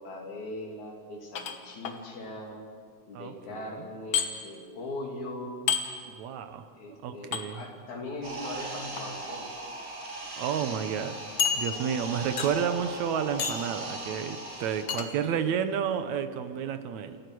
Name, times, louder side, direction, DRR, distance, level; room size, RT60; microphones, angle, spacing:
voice 1, 0.0-2.6 3.1-5.8 6.8-9.5 11.5-12.0 15.1-15.4, left 1 dB, 85° left, 0 dB, 4.3 m, -40 dB
sound 1, 1.4-2.0 4.1-4.3 5.7-5.8 7.3-7.4 8.8-9.0 9.8-9.9 10.2-10.3 11.4-12.0 12.4-12.7 13.4-13.7 14.9-15.1, left 7 dB, 50° left, 1.8 m, -29 dB
voice 2, 3.1-3.9 6.1-7.6 10.4-11.2 11.6-17.2, right 7 dB, 75° right, 10 dB, 2.3 m, -31 dB
sound 2, 8.2-14.8, right 2 dB, 30° right, 3.3 m, -39 dB
28.5 x 14.5 x 6.2 m, 2.1 s
omnidirectional pair, 3.3 m